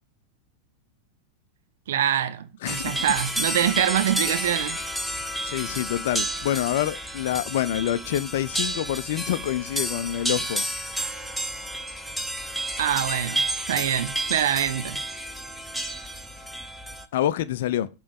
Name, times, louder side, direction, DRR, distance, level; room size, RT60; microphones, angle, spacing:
voice 1, 1.9-4.8 12.8-15.0, right 10 dB, 60° right, 0.6 m, -25 dB
voice 2, 2.6-3.0 5.4-10.7 17.1-17.9, left 12 dB, 55° left, 0.5 m, -27 dB
sound 1, 2.7-17.1, right 1 dB, ahead, 0.7 m, -31 dB
8.6 x 3.3 x 6.4 m
figure-of-eight pair, 90°, 0 cm